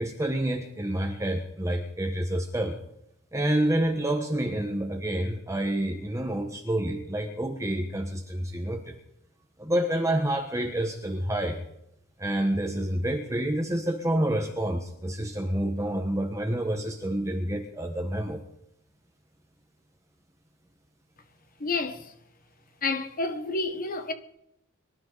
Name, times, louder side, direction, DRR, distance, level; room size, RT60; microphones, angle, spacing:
voice 1, 0.0-2.8 3.3-9.0 9.6-11.6 12.2-18.4, right 1 dB, 15° right, 1.3 m, -28 dB
voice 2, 21.6-22.1 22.8-24.1, left 3 dB, 40° left, 1.3 m, -29 dB
24.5 x 12.5 x 4.1 m
head